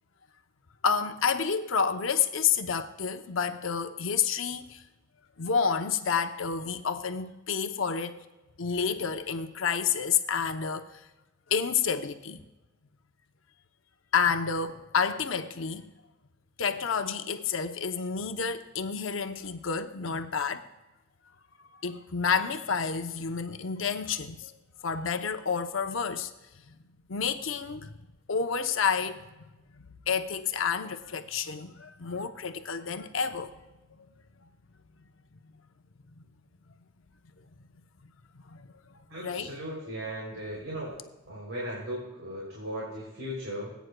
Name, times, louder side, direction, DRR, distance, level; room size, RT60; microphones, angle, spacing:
voice 1, 0.8-4.8 5.4-8.2 8.6-11.0 11.5-12.4 14.1-15.9 16.6-20.6 21.8-24.5 24.8-26.3 27.1-27.9 28.3-29.2 30.1-33.5 38.5-38.7 39.2-39.5, left 6 dB, 75° left, 0.7 m, -29 dB
voice 2, 39.1-41.0 41.3-43.7, equal, 75° right, 3.1 m, -37 dB
19.0 x 9.1 x 2.2 m
head